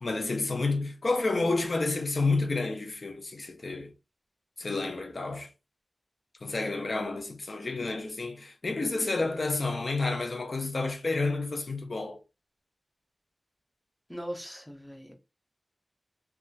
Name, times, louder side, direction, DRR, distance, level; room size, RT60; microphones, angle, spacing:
voice 1, 0.0-3.9 4.6-5.5 6.4-12.2, left 3 dB, 55° left, 0.5 m, -30 dB
voice 2, 14.1-15.1, equal, 10° left, 0.8 m, -39 dB
2.8 x 2.3 x 2.6 m
wide cardioid pair, 100°, 0 cm